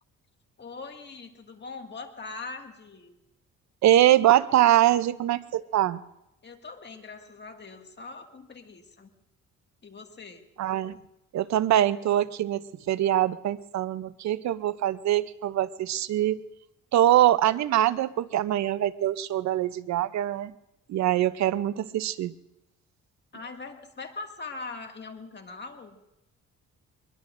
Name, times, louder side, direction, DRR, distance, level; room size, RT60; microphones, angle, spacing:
voice 1, 0.6-3.2 6.4-9.1 9.8-10.4 23.3-26.0, left 4 dB, 35° left, 3 dB, 2.0 m, -41 dB
voice 2, 3.8-6.0 10.6-11.0 11.3-12.6 12.9-16.4 16.9-20.5 20.9-22.3, right 12 dB, 65° right, 16 dB, 0.6 m, -23 dB
23.5 x 22.0 x 2.6 m, 0.89 s
cardioid pair, 90°, 30 cm